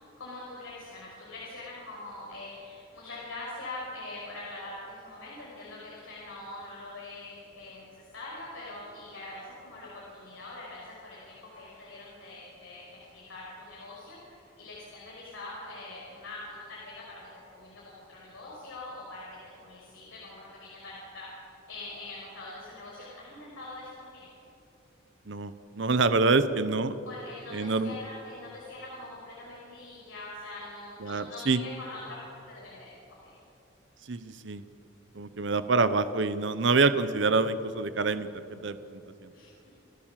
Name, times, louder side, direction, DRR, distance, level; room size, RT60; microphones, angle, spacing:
voice 1, 0.0-24.3 27.1-32.2 32.5-32.9 33.2-33.3 39.3-39.7, left 2 dB, 85° left, -6 dB, 6.0 m, -43 dB
voice 2, 25.3-27.0 27.5-27.9 31.0-31.6 34.1-34.6 35.1-39.0, right 3 dB, 60° right, 12 dB, 0.8 m, -26 dB
29.5 x 13.5 x 7.5 m, 2.8 s
head